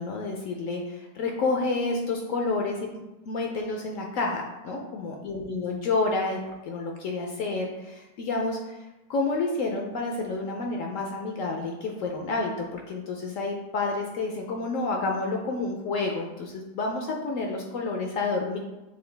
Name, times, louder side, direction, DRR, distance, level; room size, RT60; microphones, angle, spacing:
voice 1, 0.0-2.9 3.3-6.4 6.7-8.8 9.1-18.6, left 3 dB, 70° left, 1 dB, 0.8 m, -29 dB
6.7 x 2.3 x 3.2 m, 1.0 s
omnidirectional pair, 1.8 m